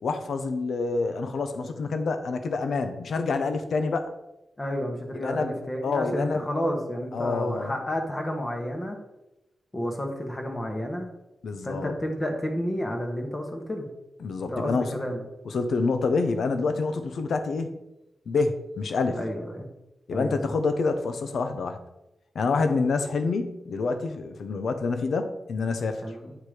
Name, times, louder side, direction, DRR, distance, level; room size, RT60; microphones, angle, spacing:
voice 1, 0.0-4.1 5.2-5.5 5.8-6.4 7.1-7.7 11.4-11.9 14.2-15.0 15.4-17.7 18.3-19.2 20.1-21.8 22.3-26.0, left 4 dB, 80° left, 8 dB, 0.8 m, -27 dB
voice 2, 4.6-9.0 9.7-11.1 11.6-13.9 14.5-15.2 19.1-19.7 20.1-20.4 26.0-26.4, equal, 20° left, 3 dB, 1.1 m, -31 dB
8.8 x 4.6 x 4.9 m, 0.94 s
wide cardioid pair, 175°, 0 cm